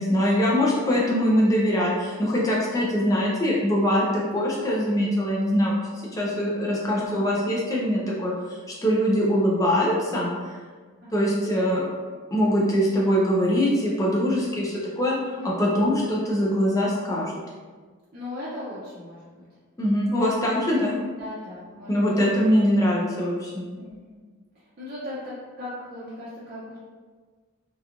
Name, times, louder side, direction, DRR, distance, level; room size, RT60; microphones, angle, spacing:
voice 1, 0.0-5.7 6.1-8.3 8.8-10.6 11.1-11.9 12.3-15.2 15.4-17.3 19.8-21.0 21.9-23.6, equal, 15° left, -4 dB, 0.4 m, -23 dB
voice 2, 18.1-19.5 20.6-22.0 23.8-24.1 24.5-26.8, left 1 dB, 40° right, -10 dB, 0.5 m, -38 dB
2.9 x 2.3 x 2.4 m, 1.5 s
head